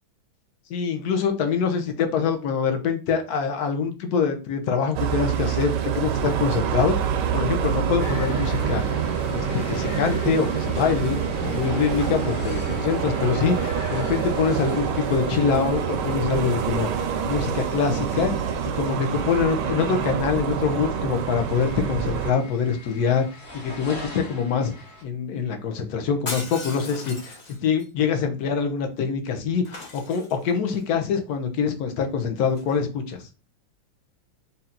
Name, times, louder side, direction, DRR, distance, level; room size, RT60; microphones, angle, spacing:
voice 1, 0.7-8.8 9.3-11.2 11.4-18.3 18.8-24.7 25.0-27.4 27.6-33.3, left 6 dB, 60° left, 6 dB, 1.1 m, -25 dB
sound 1, 4.9-22.3, right 8 dB, 75° right, 1.0 m, -26 dB
sound 2, 8.0-25.0, left 1 dB, 30° left, 1.1 m, -38 dB
Shatter, 26.3-27.8 29.6-30.8 32.5-32.8, left 2 dB, 90° left, 0.3 m, -37 dB
4.2 x 2.8 x 3.7 m, 0.31 s
omnidirectional pair, 2.3 m